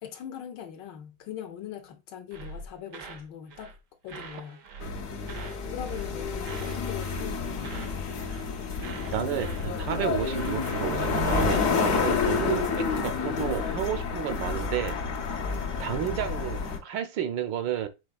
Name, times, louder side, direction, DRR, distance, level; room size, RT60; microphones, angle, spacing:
voice 1, 0.0-3.7 4.0-4.6 5.6-7.9 14.5-14.7 15.5-15.8, left 9 dB, 75° left, 1.3 m, -41 dB
sound 1, 2.3-3.3 3.5-3.8 4.1-5.6 5.9-6.2 6.4-8.5 8.8-11.7, right 4 dB, 65° right, 0.8 m, -43 dB
sound 2, 4.8-16.8, left 5 dB, 55° left, 1.0 m, -29 dB
voice 2, 9.1-14.9 15.8-17.9, right 10 dB, 80° right, 1.3 m, -31 dB
5.2 x 3.8 x 2.3 m
omnidirectional pair, 2.0 m